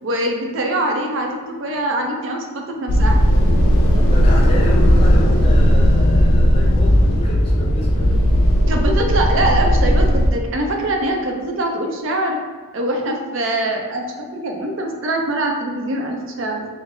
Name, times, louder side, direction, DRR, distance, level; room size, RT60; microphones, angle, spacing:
voice 1, 0.0-3.2 8.7-12.4 12.7-16.7, right 1 dB, 65° right, 2 dB, 0.5 m, -23 dB
sound 1, 2.9-10.3, equal, 70° left, 0.4 m, -15 dB
voice 2, 4.0-8.2, equal, 25° left, -3 dB, 0.6 m, -30 dB
3.9 x 2.0 x 3.6 m, 1.4 s
head